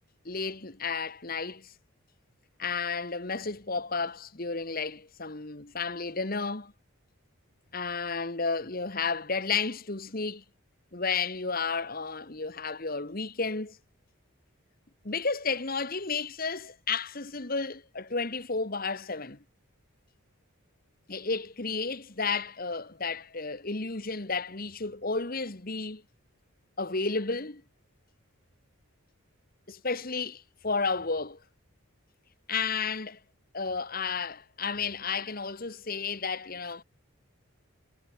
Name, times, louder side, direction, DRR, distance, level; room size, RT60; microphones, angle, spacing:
voice 1, 0.2-1.7 2.6-6.7 7.7-10.4 10.9-13.8 15.0-19.4 21.1-26.0 26.8-27.6 29.7-31.4 32.5-33.2 33.5-36.8, left 4 dB, 40° left, 1.5 m, -32 dB
head